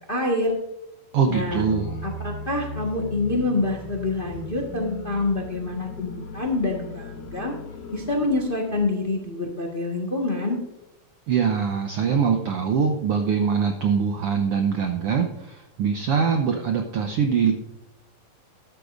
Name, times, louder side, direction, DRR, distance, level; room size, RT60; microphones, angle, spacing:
voice 1, 0.1-0.6 1.3-1.6 2.0-7.5 7.9-10.6, left 2 dB, 30° left, 0 dB, 0.9 m, -26 dB
voice 2, 1.1-2.0 11.3-17.5, right 6 dB, 90° right, 5 dB, 1.2 m, -23 dB
sound 1, 1.3-9.0, left 3 dB, 75° left, 2.6 m, -37 dB
13.5 x 12.0 x 2.6 m, 0.91 s
omnidirectional pair, 3.7 m